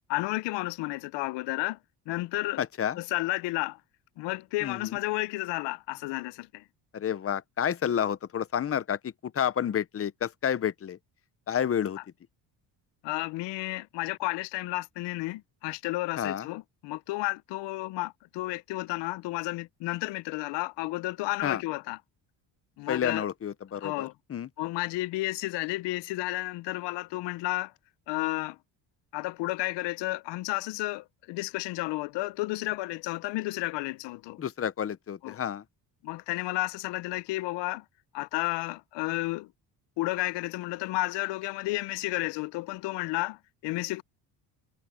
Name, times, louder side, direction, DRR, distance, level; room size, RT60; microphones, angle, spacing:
voice 1, 0.1-1.8 2.1-2.6 3.0-3.8 4.2-6.6 13.0-22.0 22.8-23.3 23.8-24.1 24.6-27.7 28.1-28.6 29.1-34.4 35.2-35.4 36.0-37.8 38.1-39.5 40.0-44.0, left 20 dB, 75° left, 0.7 m, -32 dB
voice 2, 2.6-3.0 4.6-5.0 6.9-11.0 11.5-12.0 16.2-16.5 21.4-21.6 22.9-24.5 34.4-35.6, left 9 dB, 30° left, 0.9 m, -30 dB
cardioid pair, 110°, 43 cm